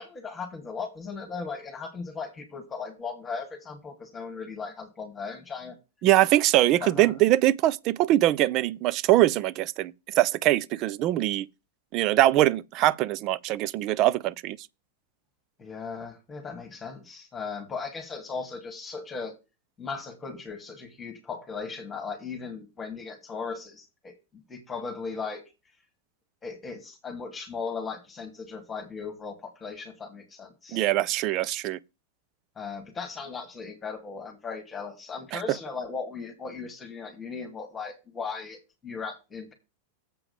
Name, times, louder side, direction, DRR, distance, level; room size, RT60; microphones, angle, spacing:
voice 1, 0.0-5.8 6.8-7.1 15.6-19.4 19.8-25.4 26.4-30.8 32.6-39.5, left 5 dB, 15° left, 2.5 m, -37 dB
voice 2, 6.0-11.5 11.9-14.6 30.7-31.8 35.3-35.4, right 15 dB, 40° right, 0.5 m, -23 dB
7.7 x 4.9 x 7.0 m
figure-of-eight pair, 90°, 0 cm